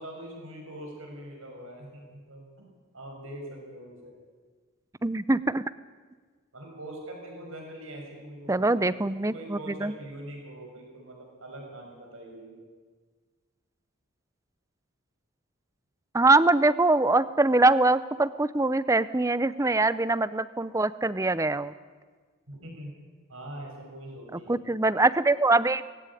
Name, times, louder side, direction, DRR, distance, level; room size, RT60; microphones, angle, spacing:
voice 1, 0.0-2.4 2.9-4.1 6.5-8.9 9.2-12.7 22.5-22.9 23.3-24.7, right 1 dB, 75° right, 1 dB, 6.4 m, -43 dB
voice 2, 5.0-5.6 8.5-9.9 16.1-21.7 24.3-25.8, right 2 dB, 15° right, 16 dB, 0.5 m, -23 dB
18.5 x 17.0 x 9.9 m, 1.5 s
head